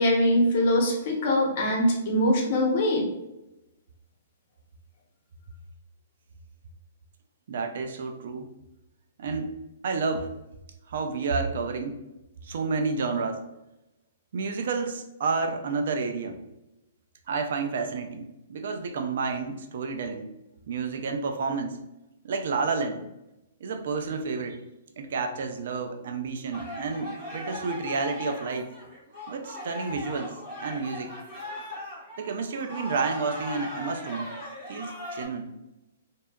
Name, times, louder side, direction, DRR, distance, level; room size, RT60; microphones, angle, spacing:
voice 1, 0.0-3.0, left 1 dB, 50° left, 0 dB, 0.8 m, -22 dB
voice 2, 7.5-8.5 9.2-9.6 9.8-10.3 10.9-12.0 12.4-13.4 14.3-16.4 17.3-20.3 20.7-21.8 22.2-23.1 23.6-24.6 25.0-28.7 29.3-31.1 32.2-34.3 34.7-35.5, right 4 dB, 65° right, 5 dB, 0.3 m, -30 dB
sound 1, 26.5-35.3, left 1 dB, 45° right, 1.2 m, -39 dB
2.6 x 2.3 x 2.3 m, 0.94 s
hypercardioid pair, 145°, 0 cm